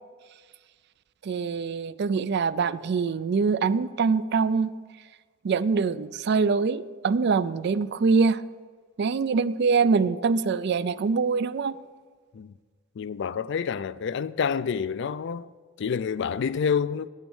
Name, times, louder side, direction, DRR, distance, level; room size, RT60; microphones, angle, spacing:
voice 1, 1.2-4.7 5.4-8.4 9.0-11.8, right 5 dB, 55° right, 0.4 m, -24 dB
voice 2, 13.0-15.5 15.8-17.1, left 6 dB, 60° left, 0.4 m, -28 dB
9.2 x 9.0 x 7.1 m
head